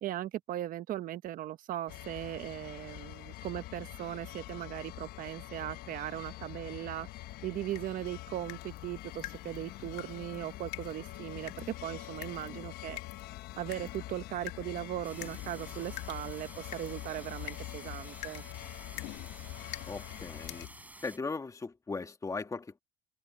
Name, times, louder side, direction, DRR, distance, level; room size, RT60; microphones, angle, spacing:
voice 1, 0.0-7.1 7.4-13.0 13.6-18.4, right 13 dB, 55° right, 1.0 m, -38 dB
sound 1, 1.9-20.7, left 16 dB, 65° left, 1.1 m, -45 dB
sound 2, 7.7-21.0, left 20 dB, 85° left, 2.4 m, -49 dB
sound 3, 15.0-21.2, right 2 dB, 10° right, 5.1 m, -52 dB
voice 2, 19.9-20.7 21.0-22.8, left 4 dB, 20° left, 2.2 m, -38 dB
cardioid pair, 115°, 17 cm